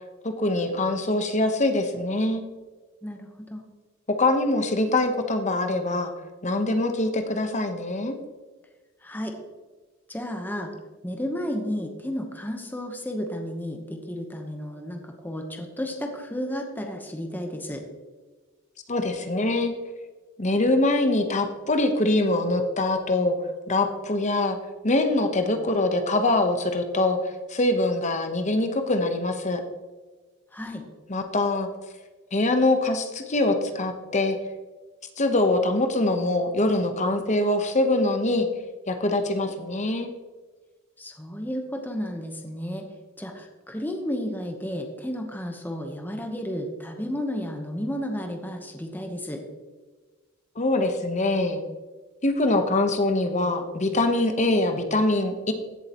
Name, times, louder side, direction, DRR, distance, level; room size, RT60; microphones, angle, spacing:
voice 1, 0.2-2.4 4.1-6.1 6.4-8.1 18.9-19.7 20.4-23.4 23.7-24.6 24.8-29.6 31.1-31.7 32.3-34.4 35.2-38.5 38.9-40.1 50.6-51.6 52.2-55.5, left 2 dB, 35° left, 6 dB, 1.0 m, -23 dB
voice 2, 3.0-3.6 9.0-9.4 10.1-10.7 11.0-17.8 30.5-30.8 41.0-42.9 43.2-49.4, equal, 10° left, 3 dB, 0.9 m, -32 dB
15.5 x 7.4 x 3.0 m, 1.3 s
head